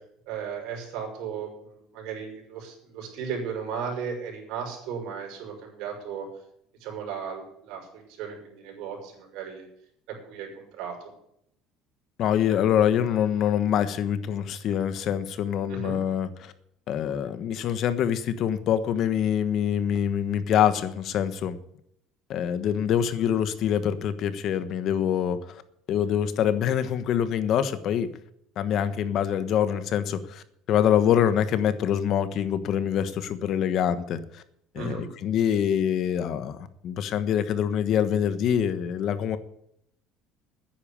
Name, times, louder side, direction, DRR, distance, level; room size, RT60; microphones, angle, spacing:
voice 1, 0.3-6.3 6.8-9.7 10.3-11.0 15.7-16.0 34.7-35.0, right 6 dB, 65° right, 1 dB, 5.9 m, -35 dB
voice 2, 12.2-16.5 16.9-21.6 22.3-25.6 25.9-28.1 28.6-30.4 30.7-34.2 34.7-36.6 36.8-39.4, left 9 dB, 50° left, 12 dB, 1.2 m, -25 dB
10.0 x 8.9 x 8.5 m, 0.73 s
cardioid pair, 140°, 0 cm